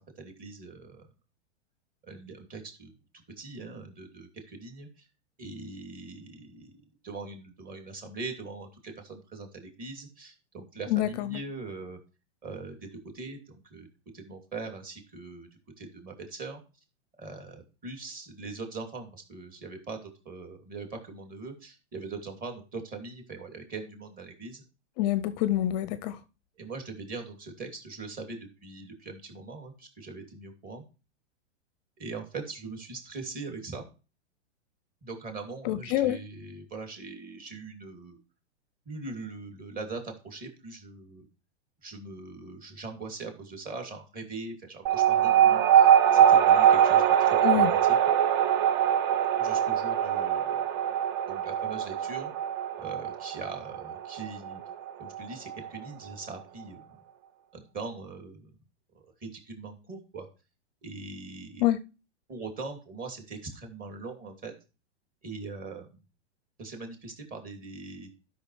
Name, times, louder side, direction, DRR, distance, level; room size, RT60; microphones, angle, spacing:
voice 1, 0.2-1.1 2.1-5.1 5.4-12.0 12.4-13.9 14.1-15.5 15.8-16.6 17.2-24.6 26.6-30.8 32.0-33.8 35.0-38.2 38.9-41.3 41.8-48.0 49.4-50.6 51.3-52.3 52.8-54.6 55.0-57.0 57.5-58.5 58.9-60.3 60.8-61.6 62.3-64.5 65.2-65.9 66.6-68.2, right 3 dB, 25° right, 2.7 m, -41 dB
voice 2, 10.9-11.4 25.0-26.2 35.6-36.2 47.4-47.7 61.6-61.8, left 13 dB, 40° left, 0.5 m, -26 dB
sound 1, 44.9-55.8, right 9 dB, 45° right, 0.7 m, -22 dB
12.5 x 6.0 x 3.2 m
hypercardioid pair, 125°, 34 cm